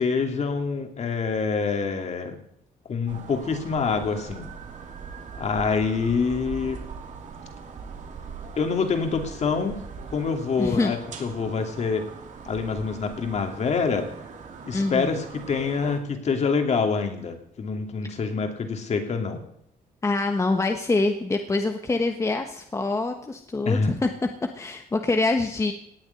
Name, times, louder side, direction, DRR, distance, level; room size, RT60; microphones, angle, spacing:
voice 1, 0.0-2.4 2.9-4.5 5.4-6.8 8.6-9.8 10.1-12.0 12.4-14.1 14.6-19.4 23.6-23.9, left 5 dB, 45° left, 5 dB, 2.7 m, -26 dB
sound 1, 3.1-16.0, right 5 dB, 50° right, 2.7 m, -41 dB
voice 2, 10.6-10.9 14.7-15.1 20.0-24.1 24.5-25.7, left 3 dB, 20° left, 5 dB, 1.1 m, -25 dB
18.0 x 7.2 x 9.8 m, 0.72 s
cardioid pair, 140°, 16 cm